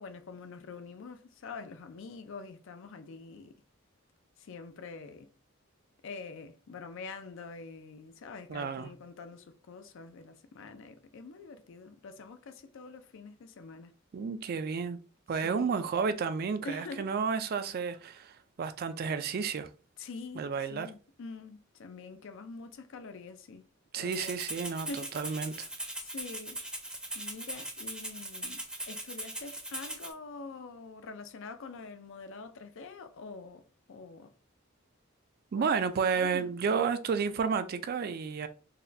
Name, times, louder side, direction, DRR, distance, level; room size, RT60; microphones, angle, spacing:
voice 1, 0.0-3.6 4.4-5.3 6.0-13.9 15.3-15.8 16.6-17.1 20.0-23.7 23.9-24.5 24.9-25.1 26.0-26.6 27.1-34.3 35.6-36.5, left 4 dB, 65° left, 0.4 m, -45 dB
voice 2, 8.5-8.9 14.1-15.0 15.3-19.7 20.4-20.9 23.9-24.9 25.1-25.7 35.5-38.5, right 5 dB, 50° right, 0.3 m, -31 dB
Rattle (instrument), 24.1-30.1, right 1 dB, 5° right, 0.6 m, -40 dB
4.0 x 2.2 x 2.6 m
head